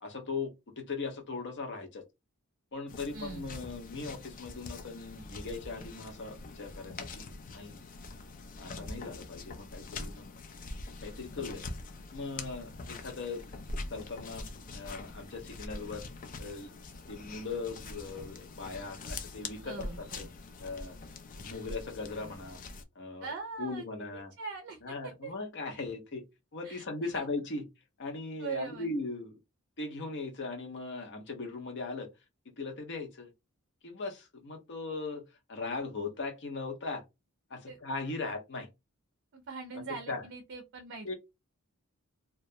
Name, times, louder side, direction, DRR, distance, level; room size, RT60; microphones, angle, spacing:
voice 1, 0.0-2.0 2.7-7.8 8.6-10.3 11.0-11.6 12.1-13.4 13.9-14.5 14.7-16.1 16.4-16.7 17.1-20.3 20.6-21.0 21.4-22.6 23.0-23.3 23.6-24.3 24.8-26.2 26.5-27.6 28.0-29.3 29.8-32.1 32.5-33.3 33.8-35.2 35.5-37.0 37.5-38.7 39.7-39.8 40.1-40.2 41.0-41.1, left 3 dB, 55° left, 0.8 m, -39 dB
sound 1, 2.9-22.8, left 3 dB, 40° left, 0.4 m, -44 dB
voice 2, 3.1-3.5 19.6-20.3 23.2-23.8 24.4-24.9 25.2-25.3 26.6-26.8 27.1-27.2 28.4-28.9 37.7-37.8 39.3-41.1, right 4 dB, 55° right, 0.5 m, -41 dB
2.3 x 2.1 x 2.7 m
head